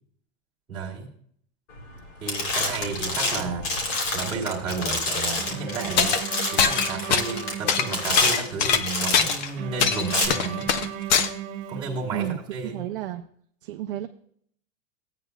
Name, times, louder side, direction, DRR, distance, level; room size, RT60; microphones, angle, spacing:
voice 1, 0.7-1.1 2.2-6.2 6.5-10.7 11.7-12.8, right 4 dB, 10° right, -5 dB, 1.7 m, -32 dB
sound 1, 1.8-2.0 2.3-9.5 10.0-10.3, left 2 dB, 70° left, 3.1 m, -28 dB
Bowed string instrument, 5.4-8.6 9.6-12.5, right 9 dB, 60° right, 1.1 m, -36 dB
sound 2, 6.0-6.2 6.6-7.4 7.7-9.5 9.8-11.3, left 7 dB, 35° left, 0.5 m, -22 dB
voice 2, 12.6-13.2 13.6-14.1, right 12 dB, 45° right, 6 dB, 0.5 m, -31 dB
15.0 x 9.1 x 2.2 m, 0.63 s
supercardioid pair, 180°, 39 cm